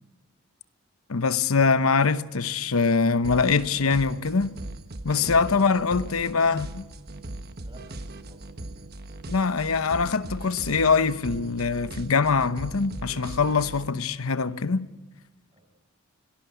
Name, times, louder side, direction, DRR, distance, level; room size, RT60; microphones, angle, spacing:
voice 1, 1.1-4.6 5.0-6.8 9.3-14.9, left 4 dB, 85° left, 0.9 m, -23 dB
sound 1, 3.2-13.9, right 2 dB, 50° right, 1.2 m, -39 dB
voice 2, 5.0-6.2 7.6-8.5 15.5-15.6, right 1 dB, 25° right, 5.7 m, -48 dB
23.5 x 18.0 x 9.2 m
head